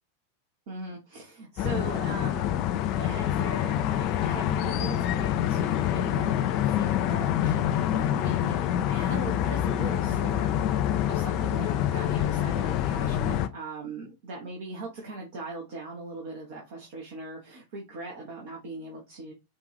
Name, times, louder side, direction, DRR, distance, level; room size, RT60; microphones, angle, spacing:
voice 1, 0.7-2.6 3.0-10.6 11.1-19.3, right 2 dB, 50° right, -1 dB, 1.2 m, -40 dB
sound 1, 1.6-13.5, left 11 dB, 40° left, 0.5 m, -26 dB
5.0 x 2.7 x 3.3 m, 0.24 s
figure-of-eight pair, 90°, 0 cm